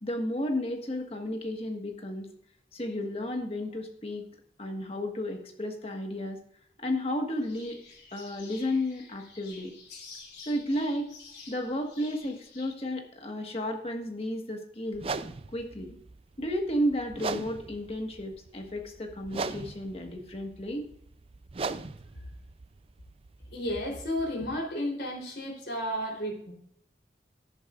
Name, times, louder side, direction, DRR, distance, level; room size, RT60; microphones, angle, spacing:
voice 1, 0.0-2.3 2.7-4.3 4.6-6.4 6.8-7.8 8.1-9.7 10.4-11.1 11.5-15.1 15.5-16.0 16.4-20.9, left 1 dB, 35° left, 4 dB, 1.5 m, -33 dB
sound 1, 7.4-12.7, left 4 dB, 90° left, 3.9 m, -50 dB
sound 2, 14.9-23.7, right 4 dB, 30° right, 0.4 m, -39 dB
voice 2, 23.5-26.5, equal, 70° left, -1 dB, 3.5 m, -32 dB
13.0 x 11.5 x 2.4 m, 0.67 s
head